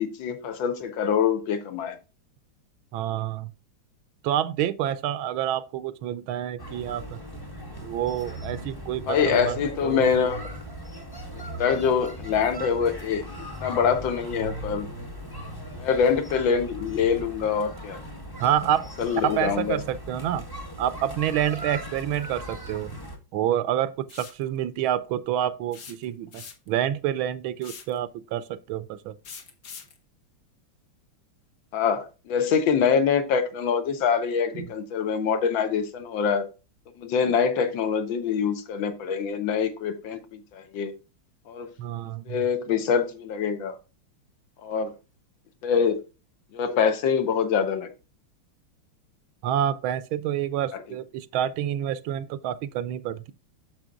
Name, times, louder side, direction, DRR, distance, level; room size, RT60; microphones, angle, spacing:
voice 1, 0.0-2.0 9.1-10.4 11.6-13.2 13.6-14.9 15.8-18.0 19.0-19.8 31.7-36.4 37.0-40.9 41.5-41.7 42.3-43.8 44.6-44.9 45.6-46.0 46.5-47.9, left 6 dB, 70° left, 1.6 m, -24 dB
voice 2, 2.9-3.5 4.2-7.2 7.8-9.6 9.8-10.1 18.4-18.9 19.2-20.5 20.8-22.9 23.3-29.1 34.5-34.7 41.8-42.4 49.4-53.3, right 11 dB, 75° right, 1.3 m, -28 dB
sound 1, 6.6-23.2, equal, 15° left, 0.7 m, -38 dB
sound 2, 24.1-24.4 25.7-26.8 27.6-28.0 29.2-30.0, left 6 dB, 50° left, 1.3 m, -43 dB
8.9 x 6.8 x 2.3 m
omnidirectional pair, 2.4 m